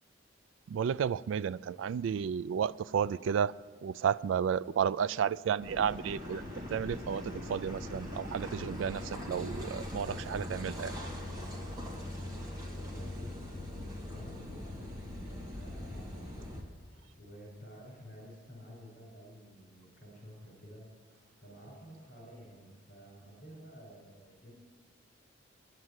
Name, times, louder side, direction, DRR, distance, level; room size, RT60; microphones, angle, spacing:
voice 1, 0.7-3.5 3.8-6.4 6.7-10.9, right 7 dB, 80° right, 0.3 m, -32 dB
Car passing by / Idling / Accelerating revving vroom, 5.6-16.6, left 1 dB, 20° right, 1.9 m, -41 dB
voice 2, 12.6-20.9 21.4-24.5, equal, 60° left, 5.1 m, -52 dB
11.0 x 7.6 x 9.6 m
head